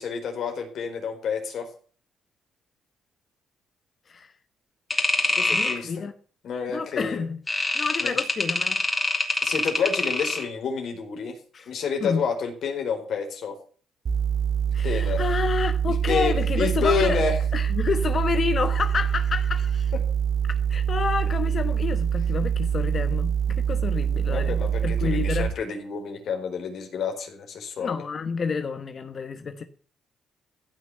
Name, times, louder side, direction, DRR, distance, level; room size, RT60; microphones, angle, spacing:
voice 1, 0.0-1.7 5.3-6.0 6.4-7.2 8.0-8.2 9.4-11.4 11.7-13.5 14.8-15.2 15.9-17.4 24.3-28.0, left 5 dB, 65° left, 4.3 m, -29 dB
sound 1, 4.9-5.8 7.5-10.5, left 2 dB, 25° left, 3.4 m, -25 dB
voice 2, 5.5-6.1 6.7-7.4 7.7-8.8 11.5-11.7 12.0-12.2 14.7-17.2 17.5-19.9 20.7-25.5 27.8-29.6, left 5 dB, 45° left, 1.2 m, -29 dB
sound 2, 14.1-25.5, right 8 dB, 55° right, 2.0 m, -25 dB
15.5 x 6.2 x 9.0 m
cardioid pair, 90°, 0 cm